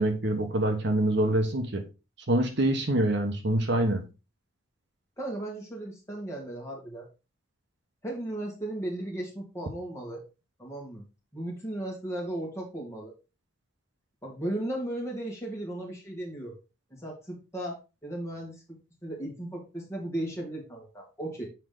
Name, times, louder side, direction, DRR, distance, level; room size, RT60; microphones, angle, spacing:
voice 1, 0.0-1.8 2.3-4.0, right 1 dB, 55° right, 5 dB, 1.1 m, -25 dB
voice 2, 5.2-7.1 8.0-10.2 10.6-11.1 11.3-13.1 14.2-16.5 16.9-21.5, right 1 dB, 15° left, -2 dB, 2.3 m, -36 dB
7.1 x 4.9 x 3.9 m, 0.29 s
head